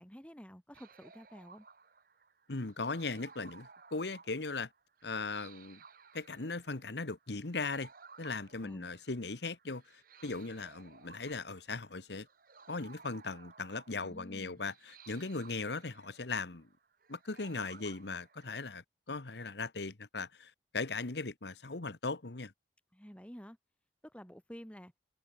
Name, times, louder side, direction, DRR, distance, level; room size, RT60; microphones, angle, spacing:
voice 1, 0.0-1.7 8.6-8.9 13.9-14.7 22.9-23.6 24.0-24.9, equal, 5° left, 4.1 m, -50 dB
sound 1, 0.7-18.8, right 5 dB, 55° right, 1.4 m, -58 dB
voice 2, 2.5-4.7 5.0-5.8 6.1-7.9 8.2-12.3 12.7-16.7 17.1-22.5, left 3 dB, 75° left, 1.3 m, -38 dB
head